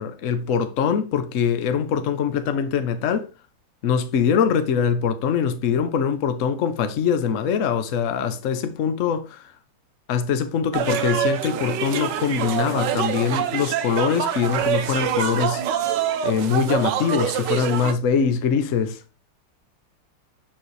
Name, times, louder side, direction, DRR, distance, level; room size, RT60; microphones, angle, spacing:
voice 1, 0.0-3.3 3.8-9.4 10.1-15.6 16.2-19.0, left 7 dB, 60° left, 0.8 m, -23 dB
sound 1, 10.7-17.9, right 9 dB, 65° right, 1.2 m, -25 dB
7.5 x 4.7 x 3.2 m
omnidirectional pair, 2.3 m